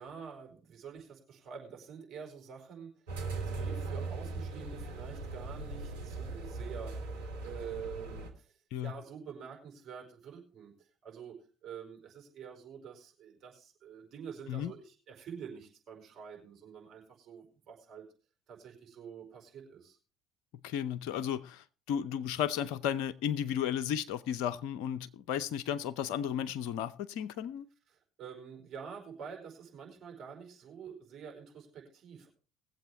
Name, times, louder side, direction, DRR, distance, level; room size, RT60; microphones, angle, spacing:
voice 1, 0.0-6.9 7.4-8.5 8.8-18.0 18.5-20.0 27.9-32.3, right 7 dB, 50° right, 4.7 m, -47 dB
sound 1, 3.1-8.3, right 3 dB, 80° right, 2.3 m, -39 dB
voice 2, 20.6-27.7, left 9 dB, 65° left, 0.7 m, -34 dB
20.5 x 7.8 x 3.3 m
hypercardioid pair, 60°, 0 cm